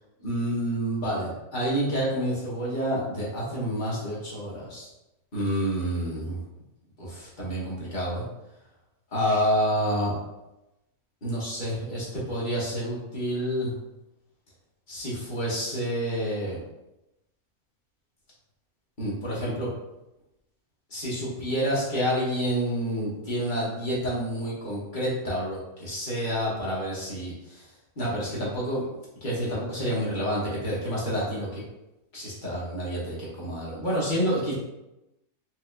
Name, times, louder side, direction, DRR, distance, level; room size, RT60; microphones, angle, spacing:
voice 1, 0.2-4.9 5.3-6.4 7.0-8.2 9.1-10.1 11.2-13.7 14.9-16.6 19.0-19.7 20.9-27.7 28.0-28.9 29.2-31.6 32.1-34.5, equal, 35° left, -6 dB, 1.0 m, -28 dB
4.4 x 2.2 x 2.4 m, 0.94 s
omnidirectional pair, 1.6 m